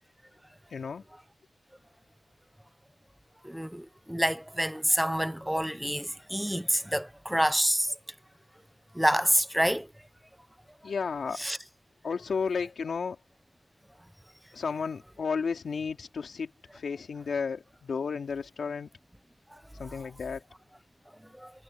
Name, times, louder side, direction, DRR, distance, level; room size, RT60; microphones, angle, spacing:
voice 1, 0.7-1.0 10.8-11.4 12.0-13.2 14.5-18.9 19.8-20.4, left 5 dB, 80° left, 3.3 m, -33 dB
voice 2, 3.4-7.9 8.9-9.9 11.4-11.6 19.8-19.9 21.4-21.5, equal, 5° right, 0.9 m, -27 dB
cardioid pair, 65°, 0 cm